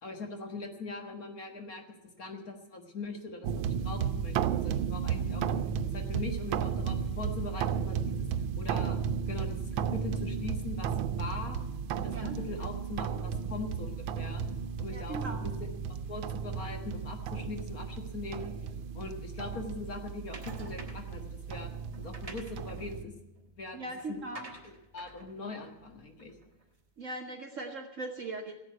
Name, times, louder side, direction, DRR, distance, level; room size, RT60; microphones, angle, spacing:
voice 1, 0.0-5.5 5.9-8.3 8.6-9.0 9.3-10.9 11.2-11.6 11.9-14.4 14.8-15.7 16.1-18.5 18.9-21.7 22.0-23.1 23.5-26.3, left 3 dB, 45° left, 4 dB, 1.8 m, -41 dB
sound 1, 3.4-23.0, right 7 dB, 75° right, 1.4 m, -34 dB
voice 2, 14.9-15.5 23.7-24.5 27.0-28.6, right 2 dB, 45° right, 3 dB, 1.2 m, -39 dB
sound 2, 20.3-21.2 21.9-26.6, right 1 dB, 20° right, 1.4 m, -49 dB
15.5 x 8.0 x 9.4 m, 0.95 s
omnidirectional pair, 2.3 m